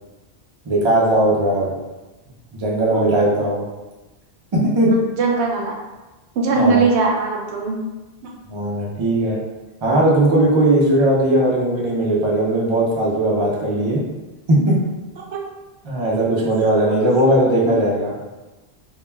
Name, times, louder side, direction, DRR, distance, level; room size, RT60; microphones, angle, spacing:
voice 1, 0.7-1.7 2.5-3.7 4.5-4.9 6.6-6.8 8.5-9.4 9.8-14.0 14.5-14.8 15.8-18.1, right 1 dB, 40° right, -4 dB, 0.4 m, -18 dB
voice 2, 5.2-5.8 6.4-7.8 14.6-14.7 15.3-15.4 17.6-17.8, right 4 dB, 75° right, -1 dB, 0.8 m, -20 dB
2.3 x 2.2 x 3.2 m, 1.1 s
omnidirectional pair, 1.1 m